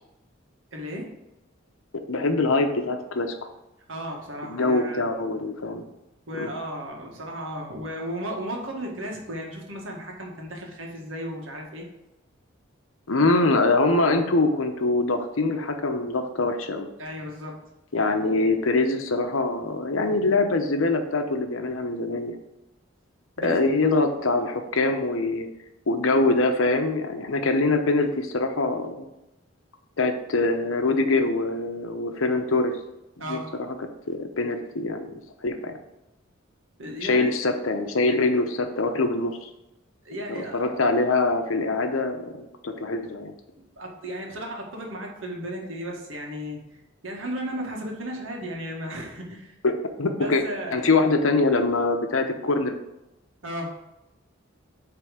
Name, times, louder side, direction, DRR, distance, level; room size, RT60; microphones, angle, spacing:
voice 1, 0.7-1.1 3.9-5.1 6.3-11.9 17.0-17.6 23.4-23.6 33.2-33.5 36.8-37.2 40.0-40.8 43.8-46.6 47.0-49.5 50.2-50.8 53.4-53.7, equal, 75° right, 0 dB, 1.6 m, -34 dB
voice 2, 2.1-3.3 4.4-5.8 6.4-6.5 13.1-16.9 17.9-22.3 23.4-25.5 25.9-29.1 30.0-32.8 33.3-33.4 33.8-35.8 37.0-39.5 40.3-43.3 49.6-50.4 50.7-52.8, left 3 dB, 85° left, 6 dB, 0.8 m, -24 dB
8.1 x 3.4 x 4.9 m, 0.93 s
head